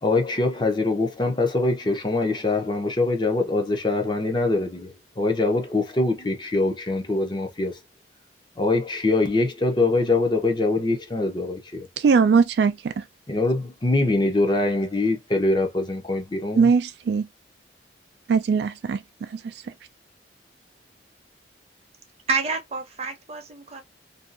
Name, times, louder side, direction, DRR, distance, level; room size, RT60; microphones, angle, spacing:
voice 1, 0.0-7.8 8.6-11.9 13.3-16.7, left 2 dB, 25° left, 0.6 m, -23 dB
voice 2, 12.0-13.0 16.6-17.3 18.3-19.4, right 5 dB, 65° right, 0.3 m, -20 dB
voice 3, 22.3-23.8, right 4 dB, 35° right, 0.6 m, -28 dB
2.6 x 2.4 x 2.5 m
head